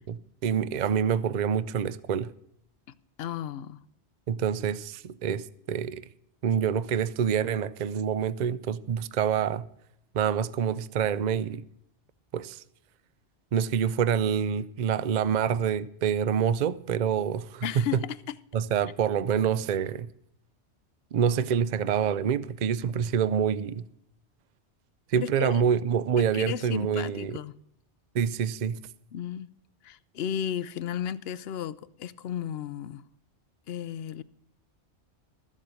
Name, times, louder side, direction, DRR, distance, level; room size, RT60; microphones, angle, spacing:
voice 1, 0.1-2.3 4.3-6.0 6.4-9.6 10.1-11.6 12.3-12.6 13.5-17.7 18.5-20.1 21.1-23.9 25.1-27.4 28.1-28.8, right 8 dB, 55° right, 0.5 m, -27 dB
voice 2, 3.2-3.8 17.6-18.0 25.2-25.6 26.3-27.5 29.1-29.5 29.8-33.0 33.7-34.2, left 9 dB, 65° left, 0.8 m, -34 dB
13.5 x 7.5 x 6.3 m
omnidirectional pair, 1.2 m